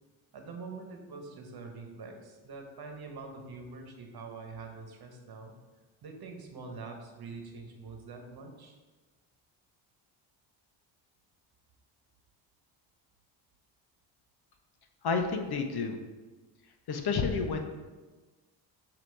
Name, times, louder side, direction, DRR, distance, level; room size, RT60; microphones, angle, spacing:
voice 1, 0.3-5.5 6.0-8.8, right 4 dB, 50° right, 3 dB, 1.2 m, -45 dB
voice 2, 15.0-16.0 16.9-17.6, left 5 dB, 50° left, 6 dB, 0.9 m, -30 dB
7.4 x 2.9 x 4.7 m, 1.3 s
supercardioid pair, 70°, 49 cm